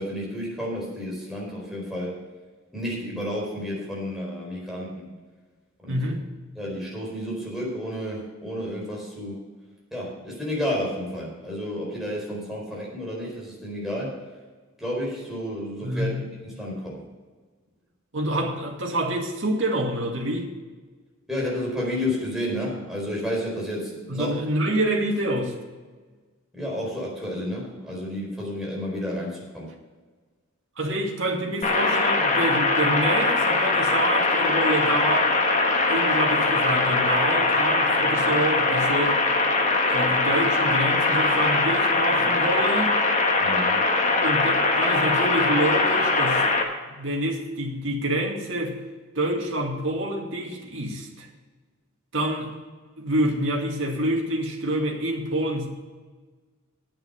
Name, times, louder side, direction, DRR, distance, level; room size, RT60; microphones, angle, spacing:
voice 1, 0.0-2.2 2.7-5.1 5.8-6.0 6.6-9.5 9.9-14.2 14.8-17.0 21.3-24.3 24.6-24.7 26.5-29.7 43.4-43.8, left 1 dB, ahead, -4 dB, 4.3 m, -31 dB
voice 2, 5.9-6.2 15.8-16.2 18.1-20.5 24.1-25.5 30.8-35.3 35.9-39.2 39.9-42.9 44.2-46.4 46.8-48.8 49.2-51.3 52.1-52.5 53.0-55.7, right 1 dB, 60° right, 1 dB, 2.1 m, -27 dB
sound 1, 31.6-46.6, left 3 dB, 35° left, 1.5 m, -22 dB
9.2 x 8.8 x 6.8 m, 1.4 s
head